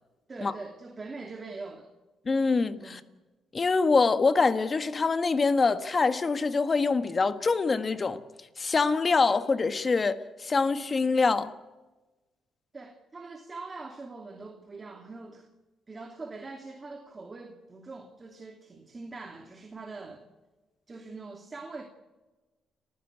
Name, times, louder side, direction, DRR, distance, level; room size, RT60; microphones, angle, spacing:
voice 1, 0.3-1.9 2.8-3.0 12.7-15.5 15.9-20.2 20.9-21.8, right 3 dB, 30° right, 2.7 m, -43 dB
voice 2, 2.2-3.0 3.5-8.2 8.6-11.5, left 4 dB, 35° left, 1.5 m, -25 dB
30.0 x 15.0 x 8.2 m
cardioid pair, 90°, 0 cm